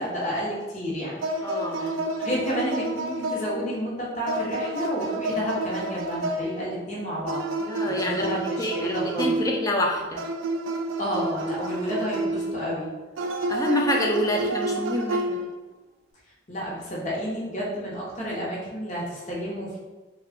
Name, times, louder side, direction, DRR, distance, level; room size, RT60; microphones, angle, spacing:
voice 1, 0.0-1.9 2.2-7.4 7.8-9.4 11.0-12.9 16.5-19.8, equal, 40° left, -6 dB, 0.9 m, -31 dB
sound 1, 1.2-3.8 4.3-6.7 7.3-9.8 10.2-12.6 13.2-15.6, right 2 dB, 85° right, 0.4 m, -29 dB
voice 2, 1.4-2.0 7.6-10.2 13.5-15.5, left 1 dB, 15° left, 0 dB, 0.4 m, -27 dB
3.3 x 2.3 x 3.5 m, 1.2 s
head